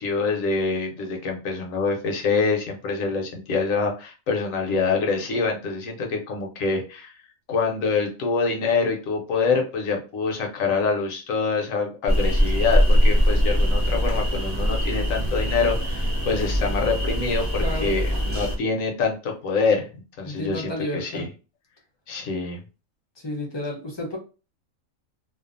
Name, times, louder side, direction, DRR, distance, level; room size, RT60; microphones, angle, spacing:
voice 1, 0.0-7.2 7.5-19.9 20.2-21.3 22.1-22.6, left 4 dB, 75° left, 1 dB, 1.1 m, -25 dB
sound 1, 12.1-18.6, equal, 20° right, 0.9 m, -22 dB
voice 2, 17.6-17.9 20.2-21.3 23.2-24.2, left 1 dB, 30° left, 0 dB, 0.5 m, -31 dB
2.5 x 2.4 x 2.5 m, 0.33 s
omnidirectional pair, 1.4 m